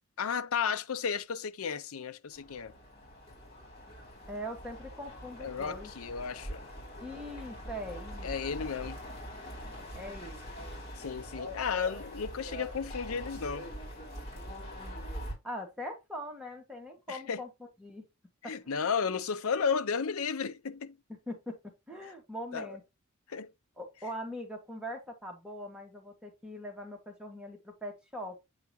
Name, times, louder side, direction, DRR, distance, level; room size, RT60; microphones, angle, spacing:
voice 1, 0.2-2.7 5.4-6.7 8.2-9.0 11.0-13.7 17.1-17.4 18.4-21.0 22.5-22.8 23.3-23.5, left 6 dB, 75° left, 0.6 m, -33 dB
sound 1, 2.3-15.3, equal, 30° left, 4.8 m, -43 dB
voice 2, 4.3-5.9 7.0-8.6 9.9-10.7 15.4-18.0 18.4-18.7 21.3-21.6 21.9-22.8 23.8-28.4, equal, 5° right, 2.1 m, -42 dB
8.1 x 4.6 x 3.0 m
head